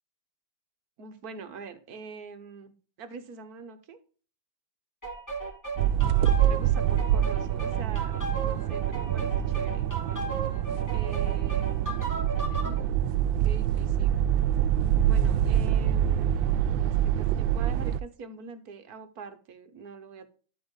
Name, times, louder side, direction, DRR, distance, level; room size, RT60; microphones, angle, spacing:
voice 1, 1.0-2.7 3.0-4.0 6.4-9.9 10.9-12.0 12.5-14.2 15.0-16.4 16.7-20.3, right 4 dB, 55° right, 8 dB, 1.5 m, -44 dB
sound 1, 5.0-12.8, right 3 dB, 10° left, 2.6 m, -36 dB
sound 2, 5.8-18.0, right 11 dB, 85° right, 1.3 m, -25 dB
12.0 x 4.5 x 3.8 m, 0.39 s
omnidirectional pair, 2.0 m